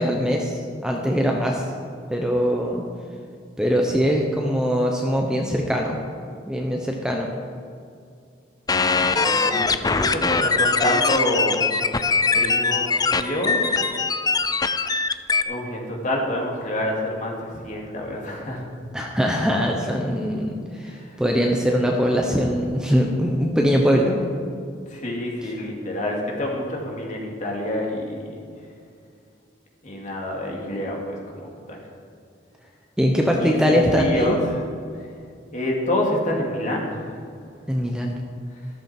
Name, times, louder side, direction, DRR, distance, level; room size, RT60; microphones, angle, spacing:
voice 1, 0.0-1.6 2.1-2.8 3.6-6.0 6.5-7.3 18.9-24.2 33.0-34.3 37.7-38.2, equal, 5° right, 0 dB, 1.0 m, -22 dB
sound 1, 8.7-15.4, left 4 dB, 20° left, 0.5 m, -21 dB
voice 2, 9.0-11.6 12.3-13.8 15.4-18.6 20.8-21.2 24.9-28.2 29.8-31.8 33.4-34.6 35.5-37.2, left 1 dB, 40° left, -1 dB, 2.7 m, -27 dB
14.0 x 13.5 x 4.5 m, 2.3 s
head